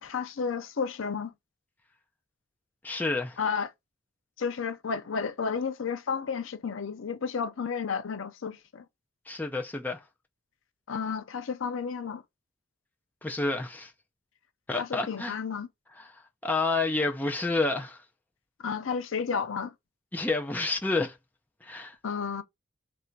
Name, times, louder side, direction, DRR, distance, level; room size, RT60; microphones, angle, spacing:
voice 1, 0.0-1.3 3.4-3.7 4.4-8.8 10.9-12.2 14.8-15.7 18.6-19.7 22.0-22.4, left 6 dB, 70° left, 0.5 m, -32 dB
voice 2, 2.8-3.4 9.3-10.0 13.2-13.9 14.7-15.3 16.0-16.1 16.4-18.0 20.1-21.2 21.6-21.9, left 3 dB, 10° left, 0.5 m, -29 dB
3.3 x 2.6 x 4.4 m
head